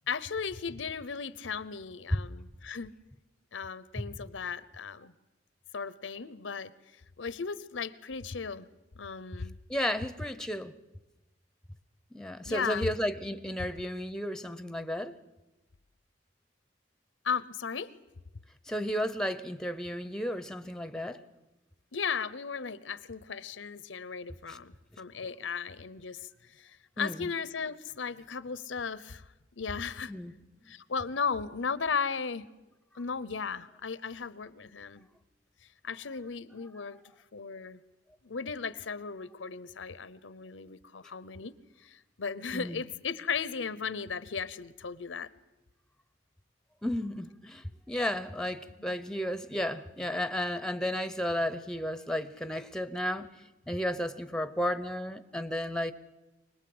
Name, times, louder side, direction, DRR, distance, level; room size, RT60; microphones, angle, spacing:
voice 1, 0.1-2.9 3.5-5.1 5.7-6.7 7.2-8.7 9.0-9.6 12.4-12.9 17.2-17.9 21.9-29.2 29.6-30.1 30.7-32.4 32.9-35.1 35.8-37.0 37.3-37.8 38.2-45.3, left 5 dB, 85° left, 0.8 m, -36 dB
voice 2, 9.7-10.7 12.1-15.1 18.7-21.2 24.5-24.6 27.0-27.3 30.1-30.3 42.5-42.8 46.8-53.3 53.7-55.9, equal, 5° left, 0.7 m, -33 dB
25.0 x 19.5 x 7.9 m
head